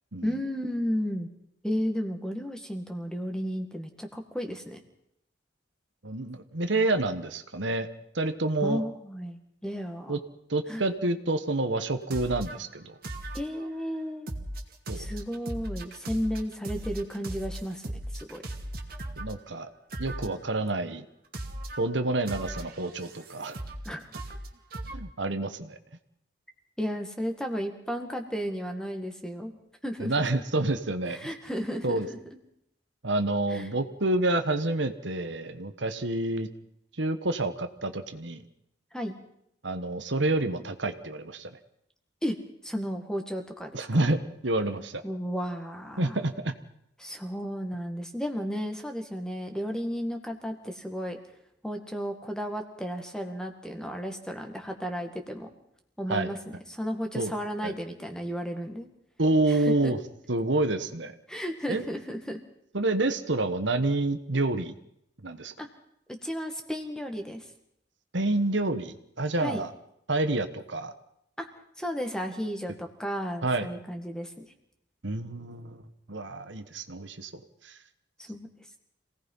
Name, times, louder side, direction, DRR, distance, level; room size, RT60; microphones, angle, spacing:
voice 1, 0.2-1.3 1.6-4.8 8.6-10.2 10.7-10.8 13.3-14.3 14.9-18.4 23.8-24.1 26.8-29.6 29.8-30.2 31.1-32.2 33.5-33.7 38.9-39.2 42.2-42.4 42.6-44.0 45.0-46.2 47.0-51.2 51.6-55.5 56.0-56.4 56.7-58.9 59.5-59.9 61.3-62.4 65.6-65.7 66.1-67.5 69.4-69.6 71.4-71.5 71.8-74.3 78.2-78.5, equal, 5° left, 4 dB, 2.0 m, -33 dB
voice 2, 6.0-7.9 8.1-8.8 10.1-10.2 10.5-12.9 14.9-15.1 19.2-19.7 20.0-21.0 21.8-23.5 24.9-25.8 30.0-31.2 31.8-32.1 33.0-36.5 37.0-38.4 39.6-41.5 43.7-45.0 46.0-46.5 56.1-56.3 57.1-57.3 57.6-57.7 59.2-60.0 60.3-61.1 61.7-61.8 62.7-64.7 65.2-65.5 68.1-69.7 70.1-70.9 73.4-73.7 75.0-75.8 76.1-77.3 77.6-77.8, right 2 dB, 70° right, 9 dB, 1.4 m, -28 dB
sound 1, 12.1-12.6 13.0-13.7 14.3-19.3 19.9-20.5 21.3-21.8 22.3-23.9 24.1-25.0, right 1 dB, 50° right, 2.5 m, -37 dB
27.0 x 18.0 x 5.7 m, 0.75 s
head